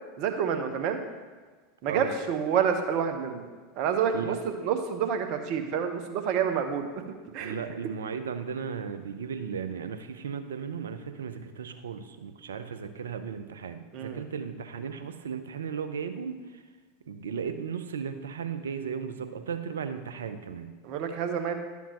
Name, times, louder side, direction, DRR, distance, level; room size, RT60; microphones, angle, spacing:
voice 1, 0.2-1.0 1.8-3.5 3.8-6.9 7.3-7.6 13.9-14.2 20.8-21.5, right 7 dB, 55° right, 6 dB, 1.0 m, -28 dB
voice 2, 7.4-16.4 17.1-20.7, right 6 dB, 80° right, 9 dB, 0.6 m, -35 dB
11.5 x 7.2 x 3.0 m, 1.4 s
hypercardioid pair, 85°, 0 cm